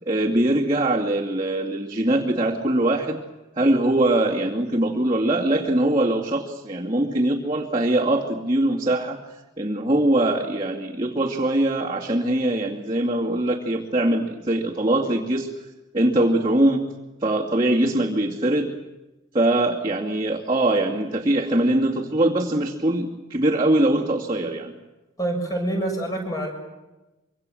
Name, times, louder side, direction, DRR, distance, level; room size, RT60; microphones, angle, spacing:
voice 1, 0.0-3.2 3.6-9.2 9.6-15.5 15.9-16.8 17.2-18.7 19.3-24.7, right 1 dB, 25° right, -4 dB, 2.4 m, -22 dB
voice 2, 25.2-26.5, right 1 dB, 20° left, 2 dB, 6.6 m, -26 dB
26.0 x 24.5 x 7.7 m, 1.1 s
head